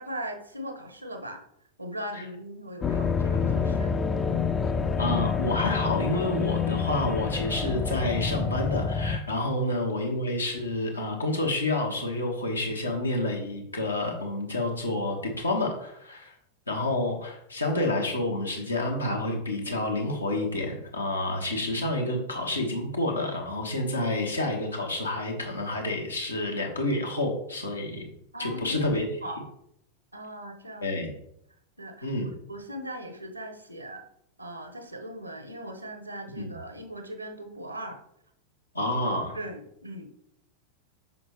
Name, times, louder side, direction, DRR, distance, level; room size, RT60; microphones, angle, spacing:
voice 1, 0.0-1.4 1.8-3.9 9.6-9.7 28.3-28.8 29.2-29.4 30.1-30.9 31.8-32.1 32.5-34.0 34.4-38.0 39.3-40.1, equal, 85° right, 6 dB, 1.1 m, -39 dB
sound 1, 2.8-9.2, left 5 dB, 20° left, 0.5 m, -27 dB
voice 2, 5.0-16.3 16.7-28.1 28.4-29.1 30.8-31.1 32.0-32.3 36.4-36.5 38.7-39.4, left 2 dB, 80° left, 1 dB, 1.6 m, -29 dB
7.6 x 5.6 x 3.2 m, 0.74 s
figure-of-eight pair, 90°, 0 cm